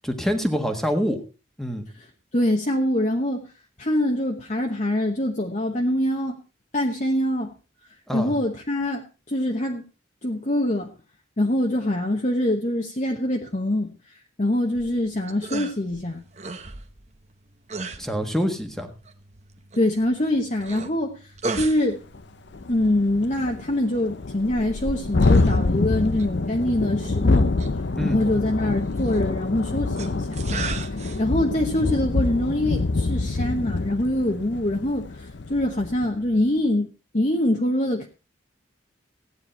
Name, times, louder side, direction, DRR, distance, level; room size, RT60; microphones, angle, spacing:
voice 1, 0.0-1.2 1.6-1.9 8.1-8.3 18.0-18.9 28.0-28.2, equal, ahead, 5 dB, 1.5 m, -25 dB
voice 2, 2.3-3.5 3.8-6.4 6.7-7.5 8.1-9.8 10.2-10.9 11.4-16.2 19.7-22.0 22.7-27.5 28.0-30.3 31.2-38.1, left 1 dB, 35° left, 1 dB, 1.1 m, -24 dB
sound 1, 14.7-33.4, right 3 dB, 35° right, 1.0 m, -39 dB
Thunderstorm, 21.7-21.8 22.1-22.2 22.5-36.2, left 3 dB, 60° left, 0.6 m, -25 dB
15.5 x 9.6 x 4.3 m, 0.33 s
head